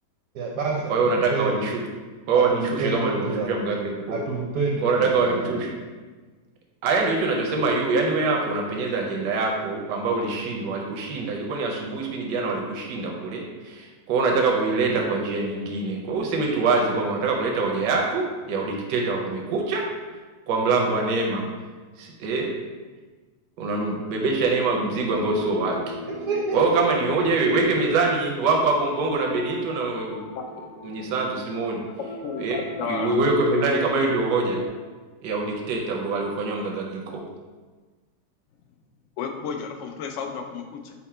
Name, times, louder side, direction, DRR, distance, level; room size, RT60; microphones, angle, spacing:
voice 1, 0.3-1.7 2.3-3.5 4.1-5.5 26.1-26.6, right 3 dB, 65° right, -2 dB, 0.8 m, -28 dB
voice 2, 0.9-1.8 2.3-4.2 4.8-5.8 6.8-19.9 20.5-21.5 22.0-22.6 23.6-25.8 26.5-30.3 30.8-31.8 32.4-34.6 35.2-37.2, right 3 dB, 85° right, 0 dB, 1.3 m, -24 dB
sound 1, 24.5-34.7, left 2 dB, 55° left, 0.9 m, -38 dB
voice 3, 32.2-33.2 39.2-40.9, left 6 dB, 80° left, 4 dB, 0.6 m, -32 dB
5.7 x 2.0 x 4.2 m, 1.4 s
omnidirectional pair, 1.8 m